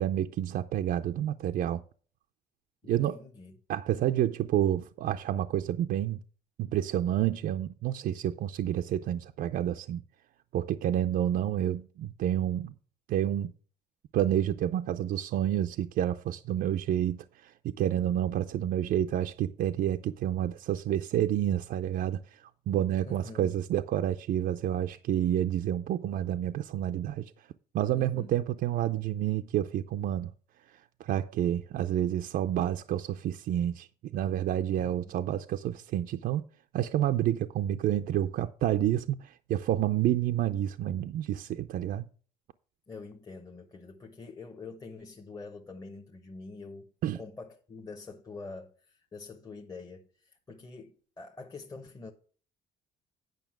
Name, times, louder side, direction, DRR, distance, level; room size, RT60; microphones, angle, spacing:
voice 1, 0.0-1.8 2.9-3.2 3.7-6.2 6.6-10.0 10.5-12.7 13.1-13.5 14.1-27.3 27.7-30.3 30.7-33.9 34.1-36.4 36.7-42.1 47.0-47.2, right 11 dB, 60° right, 0.5 m, -29 dB
voice 2, 2.8-3.6 23.0-23.6 27.9-28.3 34.7-35.1 42.9-46.9 47.1-52.1, left 3 dB, 20° left, 1.0 m, -45 dB
9.2 x 5.5 x 5.9 m
cardioid pair, 110°, 17 cm